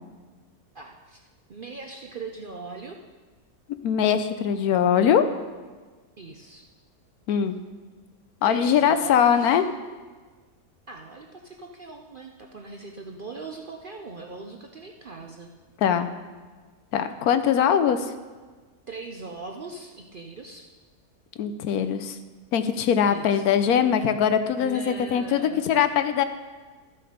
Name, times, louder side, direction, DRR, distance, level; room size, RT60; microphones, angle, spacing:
voice 1, 0.7-1.2 1.5-3.0 6.2-6.7 8.4-9.6 10.9-15.5 18.9-20.7 23.1-23.5 24.6-25.6, right 3 dB, 50° right, 2 dB, 0.6 m, -40 dB
voice 2, 3.8-5.2 7.3-7.6 8.4-9.6 15.8-16.1 16.9-18.1 21.4-22.2 22.5-26.2, left 8 dB, 75° left, 10 dB, 1.1 m, -21 dB
13.0 x 6.8 x 5.1 m, 1.4 s
omnidirectional pair, 1.6 m